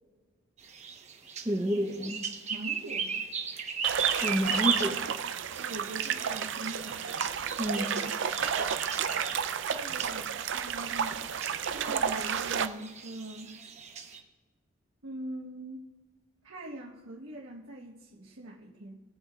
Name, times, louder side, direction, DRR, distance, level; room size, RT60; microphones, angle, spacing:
sound 1, 0.6-14.2, right 7 dB, 35° right, 1.0 m, -37 dB
voice 1, 1.4-2.2 4.2-5.0 7.6-8.1, equal, 20° right, 1 dB, 0.6 m, -29 dB
voice 2, 2.5-3.3 5.6-7.1 9.7-11.2 11.7-13.6 15.0-15.9 16.4-19.0, right 1 dB, 85° right, -4 dB, 1.3 m, -42 dB
sound 2, 3.8-12.7, right 7 dB, 60° right, 0.5 m, -32 dB
19.0 x 8.7 x 2.4 m, 1.4 s
head